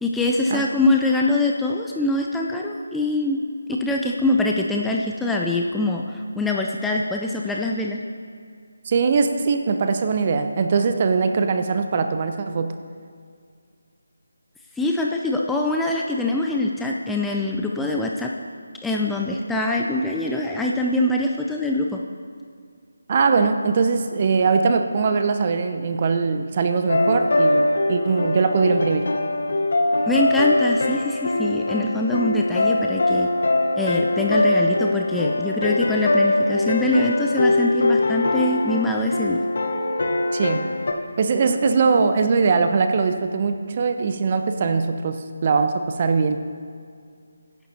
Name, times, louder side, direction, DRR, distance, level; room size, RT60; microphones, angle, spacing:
voice 1, 0.0-3.4 3.7-8.0 14.8-18.3 18.8-22.0 30.1-33.3 33.8-39.4, left 2 dB, 5° left, -1 dB, 0.5 m, -23 dB
voice 2, 8.9-12.7 23.1-29.1 40.3-40.7 41.2-46.4, right 4 dB, 35° right, 8 dB, 0.7 m, -21 dB
sound 1, 26.9-40.9, left 2 dB, 55° left, 1.2 m, -22 dB
22.0 x 11.0 x 2.8 m, 2.2 s
figure-of-eight pair, 155°, 0 cm